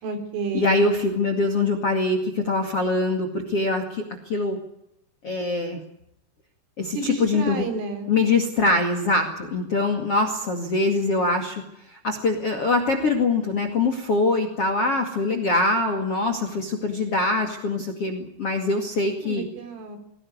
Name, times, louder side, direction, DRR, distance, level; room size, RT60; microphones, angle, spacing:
voice 1, 0.0-0.9 7.0-8.1 19.2-20.0, right 3 dB, 70° right, 7 dB, 6.2 m, -30 dB
voice 2, 0.5-4.6 5.2-5.8 6.8-7.7 8.1-11.6 11.9-19.5, left 2 dB, 45° left, 6 dB, 2.1 m, -23 dB
21.5 x 17.5 x 9.6 m, 0.80 s
omnidirectional pair, 5.8 m